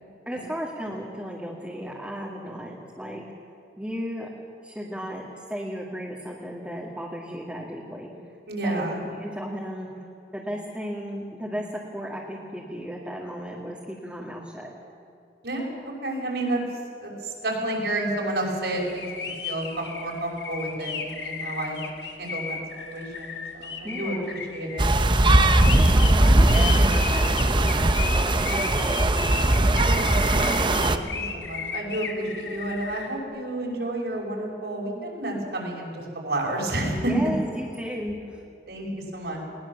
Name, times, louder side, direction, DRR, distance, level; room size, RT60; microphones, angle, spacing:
voice 1, 0.3-3.2 3.8-4.3 4.6-8.1 8.6-9.9 10.3-14.7 23.8-24.4 25.7-29.4 36.9-38.4, equal, 5° right, -4 dB, 2.1 m, -35 dB
voice 2, 8.5-9.0 15.4-16.6 17.0-21.8 22.2-22.6 22.9-24.9 29.8-37.1 38.7-38.9 39.1-39.4, right 1 dB, 70° right, -1 dB, 5.9 m, -30 dB
sound 1, 18.8-33.1, left 5 dB, 80° left, 2.3 m, -35 dB
sound 2, 24.8-31.0, right 1 dB, 25° right, 0.8 m, -19 dB
20.5 x 20.0 x 7.3 m, 2.6 s
head